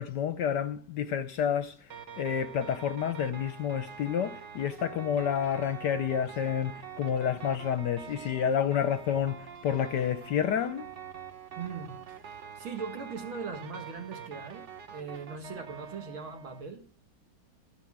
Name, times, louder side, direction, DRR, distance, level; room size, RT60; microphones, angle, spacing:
voice 1, 0.0-1.9 2.2-10.9, left 8 dB, 70° left, 1.1 m, -29 dB
sound 1, 1.9-16.6, right 7 dB, 50° right, 0.9 m, -45 dB
voice 2, 11.6-16.9, right 5 dB, 75° right, 2.6 m, -40 dB
14.5 x 5.0 x 8.6 m
omnidirectional pair, 2.3 m